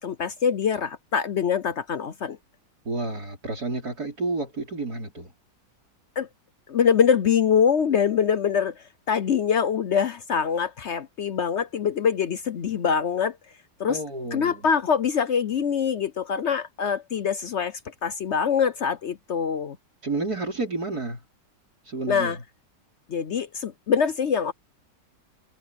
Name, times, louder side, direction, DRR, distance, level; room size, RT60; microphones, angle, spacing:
voice 1, 0.0-2.4 6.2-6.3 6.7-13.4 13.8-14.0 14.3-19.8 22.1-22.4 23.1-24.5, left 7 dB, 60° left, 0.7 m, -24 dB
voice 2, 2.9-5.3 13.9-14.6 20.0-21.2 21.8-22.3, right 3 dB, 55° right, 5.4 m, -30 dB
omnidirectional pair, 1.9 m